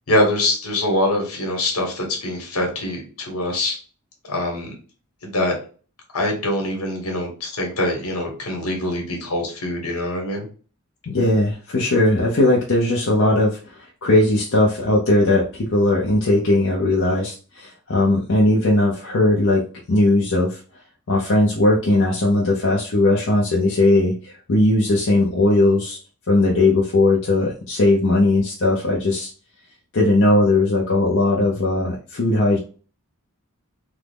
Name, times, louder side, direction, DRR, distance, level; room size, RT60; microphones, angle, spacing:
voice 1, 0.1-3.8 4.2-4.7 5.2-5.5 6.1-10.5, left 1 dB, 80° left, 1 dB, 1.3 m, -23 dB
voice 2, 11.1-20.6 21.1-26.0 26.3-29.3 29.9-32.6, left 2 dB, 60° left, -3 dB, 0.6 m, -18 dB
3.5 x 2.0 x 3.5 m, 0.38 s
head